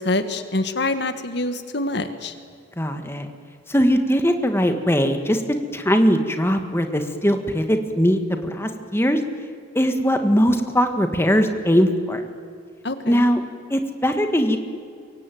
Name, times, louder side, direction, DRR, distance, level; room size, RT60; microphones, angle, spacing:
voice 1, 0.0-2.3 12.8-13.3, left 2 dB, 65° left, 9 dB, 1.7 m, -25 dB
voice 2, 2.8-3.3 3.7-9.2 9.8-12.2 13.1-13.4 13.7-14.6, equal, 15° left, 6 dB, 1.7 m, -20 dB
24.0 x 23.0 x 9.3 m, 2.2 s
head